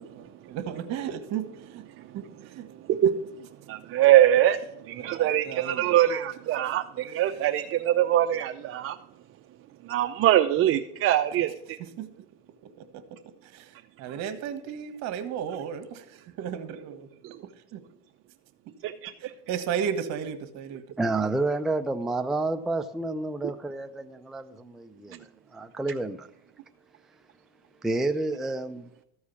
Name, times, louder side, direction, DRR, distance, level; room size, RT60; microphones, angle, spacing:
voice 1, 0.5-1.4 2.1-2.6 5.0-6.0 12.0-12.1 13.5-13.7 14.0-17.1 17.7-17.8 19.5-20.8, right 8 dB, 65° right, 1.4 m, -33 dB
voice 2, 3.7-4.6 4.8-9.0 9.8-11.8 14.1-14.2 17.2-17.4 18.8-19.3, right 12 dB, 45° right, 0.7 m, -23 dB
voice 3, 21.0-26.3 27.8-29.0, right 2 dB, ahead, 0.4 m, -30 dB
13.5 x 4.8 x 7.0 m
supercardioid pair, 115°, 31 cm